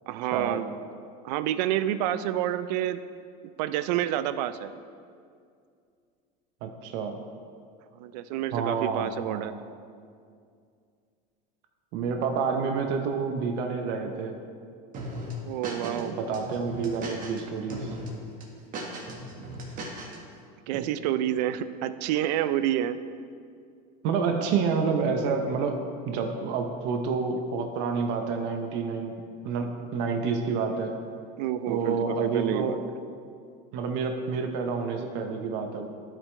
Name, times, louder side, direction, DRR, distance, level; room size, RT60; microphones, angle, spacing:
voice 1, 0.1-0.7 1.2-3.0 3.6-4.7 8.0-9.5 15.4-16.1 20.7-23.0 31.4-32.8, right 12 dB, 80° right, 13 dB, 0.4 m, -28 dB
voice 2, 6.6-7.2 8.5-9.6 11.9-14.4 15.8-17.9 20.7-20.9 24.0-25.8 26.0-29.1 29.4-30.9 31.7-32.8 33.7-35.9, right 5 dB, 60° right, 4 dB, 0.8 m, -29 dB
sound 1, 14.9-16.0 16.3-17.4 17.7-18.1 18.4-20.2, right 1 dB, 40° right, 1.5 m, -37 dB
11.5 x 5.1 x 3.2 m, 2.3 s
supercardioid pair, 125°, 21 cm